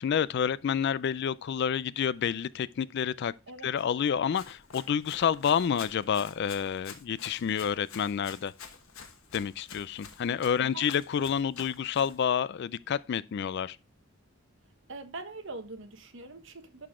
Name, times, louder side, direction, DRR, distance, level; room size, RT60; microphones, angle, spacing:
voice 1, 0.0-3.3 3.6-8.5 9.3-13.8, left 7 dB, 50° left, 0.3 m, -29 dB
Run, 4.3-12.2, left 6 dB, 75° left, 1.3 m, -48 dB
voice 2, 10.6-10.9 14.9-16.9, right 3 dB, 60° right, 1.2 m, -43 dB
11.5 x 4.0 x 3.6 m
head